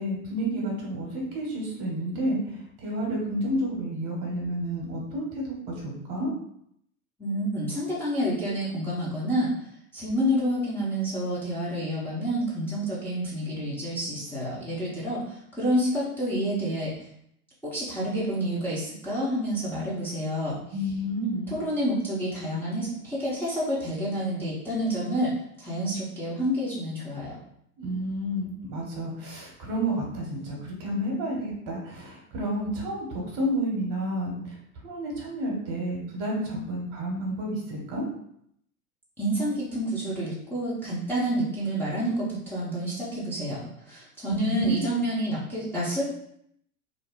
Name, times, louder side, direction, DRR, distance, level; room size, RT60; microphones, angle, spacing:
voice 1, 0.0-6.3 20.7-21.5 27.8-38.1 44.3-44.9, equal, 40° right, -1 dB, 1.0 m, -30 dB
voice 2, 7.2-9.5 9.9-16.9 17.6-20.6 21.5-27.4 39.2-46.1, equal, 5° left, -10 dB, 0.7 m, -29 dB
2.5 x 2.1 x 3.6 m, 0.71 s
figure-of-eight pair, 95°, 44 cm